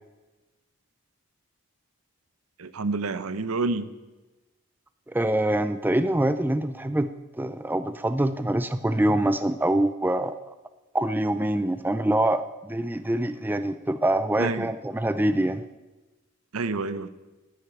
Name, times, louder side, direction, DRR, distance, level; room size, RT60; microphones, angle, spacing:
voice 1, 2.6-3.9 14.4-14.7 16.5-17.1, right 3 dB, 75° right, 14 dB, 0.8 m, -28 dB
voice 2, 5.1-7.1 7.4-10.3 10.9-15.6, right 1 dB, 10° right, 11 dB, 0.3 m, -25 dB
10.0 x 10.0 x 9.0 m, 1.2 s
head